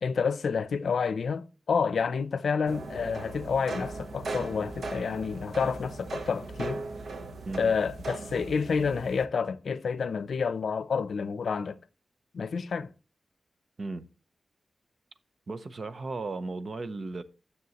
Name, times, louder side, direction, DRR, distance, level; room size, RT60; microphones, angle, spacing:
voice 1, 0.0-6.8 7.6-11.8 12.3-12.9, left 5 dB, 75° left, 0.5 m, -29 dB
sound 1, 2.7-9.3, right 3 dB, 75° right, 0.9 m, -38 dB
voice 2, 13.8-14.1 15.5-17.2, right 3 dB, 45° right, 0.7 m, -35 dB
9.5 x 6.9 x 3.0 m
wide cardioid pair, 175°, 0 cm